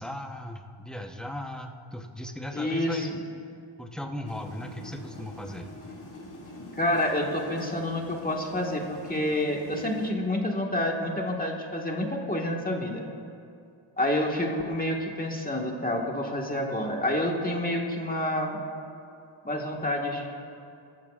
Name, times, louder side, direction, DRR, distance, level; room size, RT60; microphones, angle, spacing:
voice 1, 0.0-3.2 3.8-5.7, left 1 dB, ahead, 3 dB, 0.9 m, -37 dB
voice 2, 2.5-3.2 6.7-13.0 14.0-18.6 19.4-20.3, left 1 dB, 15° left, -1 dB, 1.7 m, -28 dB
sound 1, 4.2-10.1, left 1 dB, 35° left, 2.5 m, -44 dB
23.5 x 14.0 x 2.5 m, 2.6 s
wide cardioid pair, 100°, 50 cm